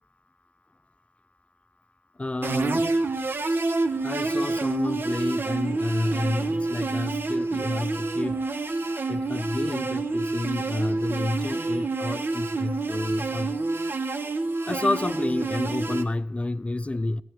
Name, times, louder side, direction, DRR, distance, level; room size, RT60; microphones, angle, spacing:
voice 1, 2.2-2.8 4.0-8.4 9.1-13.5 14.7-17.2, left 2 dB, 30° left, 0.6 m, -29 dB
sound 1, 2.4-16.0, right 3 dB, 60° right, 1.1 m, -28 dB
15.5 x 7.5 x 6.9 m
cardioid pair, 40°, 4 cm